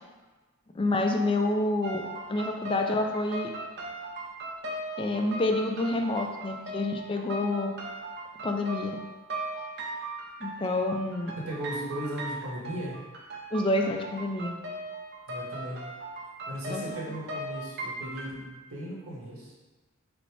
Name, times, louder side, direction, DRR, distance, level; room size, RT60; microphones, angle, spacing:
voice 1, 0.7-2.0 2.3-3.5 5.0-7.7 8.4-9.0 10.4-11.3 13.5-14.5 16.7-16.8, left 2 dB, 25° left, 3 dB, 0.4 m, -28 dB
sound 1, 1.8-18.3, right 2 dB, 50° right, 0.6 m, -39 dB
voice 2, 11.4-13.0 15.3-15.9 16.5-19.5, equal, 75° right, -4 dB, 1.2 m, -37 dB
5.1 x 2.1 x 4.6 m, 1.2 s
head